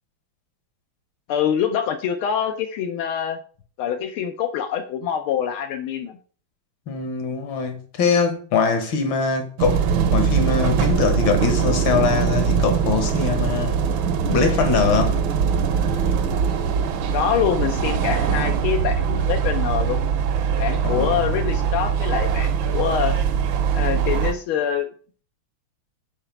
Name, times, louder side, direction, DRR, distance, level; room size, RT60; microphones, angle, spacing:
voice 1, 1.3-3.4 3.8-6.2 17.1-20.0 20.6-23.2 23.7-24.9, left 9 dB, 90° left, 1.6 m, -25 dB
voice 2, 6.9-13.8 14.3-15.2 20.8-21.4, left 5 dB, 70° left, 2.0 m, -22 dB
sound 1, 9.6-24.3, right 7 dB, 75° right, 1.6 m, -22 dB
5.7 x 4.7 x 5.8 m
omnidirectional pair, 2.3 m